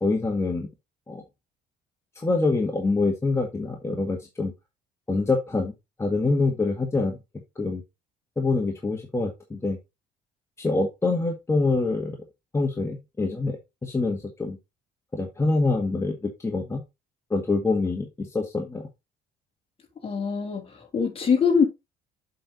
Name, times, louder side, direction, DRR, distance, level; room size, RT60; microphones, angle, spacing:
voice 1, 0.0-0.7 1.1-1.2 2.2-4.5 5.1-5.7 6.0-7.2 7.6-7.8 8.4-9.8 10.6-12.2 12.5-14.6 15.1-16.8 17.3-18.9, left 3 dB, 15° left, 1.8 m, -25 dB
voice 2, 20.0-21.7, left 6 dB, 35° left, 3.1 m, -23 dB
7.7 x 5.7 x 4.0 m
cardioid pair, 110°, 17 cm